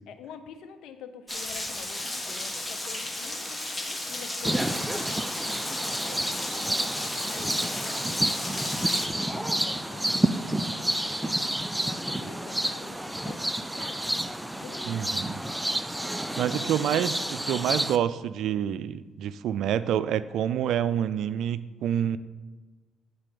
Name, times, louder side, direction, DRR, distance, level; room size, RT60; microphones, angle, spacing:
voice 1, 0.1-4.9 5.5-14.9, left 7 dB, 75° left, 8 dB, 0.8 m, -47 dB
Rain, 1.3-9.1, left 1 dB, 10° left, 1.4 m, -34 dB
sound 1, 4.4-18.0, right 1 dB, 5° right, 0.5 m, -29 dB
voice 2, 14.9-15.4 16.4-22.2, right 9 dB, 70° right, 15 dB, 0.4 m, -27 dB
9.0 x 4.0 x 6.8 m, 1.3 s
supercardioid pair, 60°, 0 cm